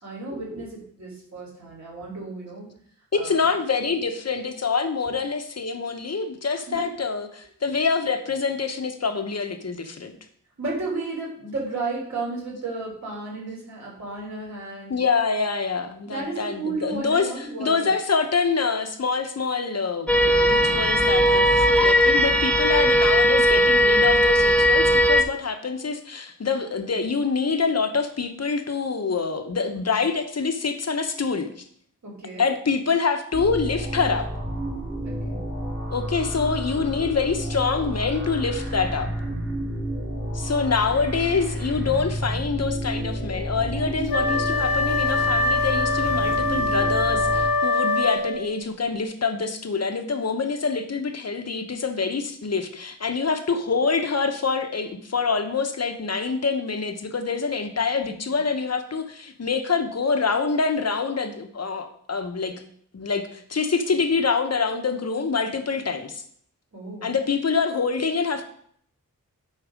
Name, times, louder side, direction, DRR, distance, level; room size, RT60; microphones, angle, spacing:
voice 1, 0.0-2.7 3.1-3.5 6.7-6.9 10.6-14.9 16.1-17.9 20.2-20.3 32.0-32.4 35.0-35.4 58.3-58.4 66.7-67.1, right 3 dB, 55° right, -4 dB, 3.4 m, -33 dB
voice 2, 3.1-10.1 14.9-31.6 32.4-34.3 35.9-39.1 40.3-62.6 62.9-66.2 67.0-68.4, left 5 dB, 50° left, 7 dB, 0.9 m, -26 dB
sound 1, 20.1-25.2, equal, 5° left, 0.8 m, -18 dB
sound 2, 33.3-47.5, right 1 dB, 35° right, 2.4 m, -30 dB
Wind instrument woodwind instrument, 44.1-48.5, left 3 dB, 75° left, 1.0 m, -23 dB
9.9 x 4.0 x 5.1 m, 0.64 s
wide cardioid pair, 95°, 34 cm